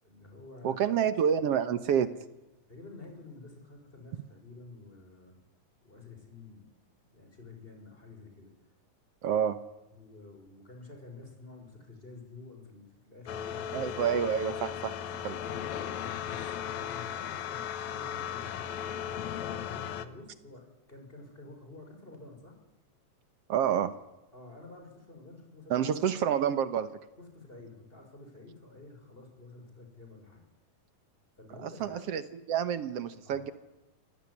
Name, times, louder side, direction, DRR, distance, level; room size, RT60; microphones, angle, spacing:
voice 1, 0.0-1.1 2.7-5.4 5.8-6.7 7.1-8.5 9.9-14.0 15.4-22.6 24.3-26.0 27.2-30.4 31.4-32.1 33.2-33.5, left 3 dB, 15° left, 3 dB, 6.4 m, -50 dB
voice 2, 0.6-2.1 9.2-9.6 13.7-14.9 15.2-15.4 23.5-23.9 25.7-26.9 31.6-32.2 32.5-33.5, right 8 dB, 60° right, 13 dB, 1.9 m, -28 dB
sound 1, 13.3-20.1, left 9 dB, 70° left, 2.5 m, -36 dB
26.0 x 18.0 x 9.9 m, 1.0 s
omnidirectional pair, 3.4 m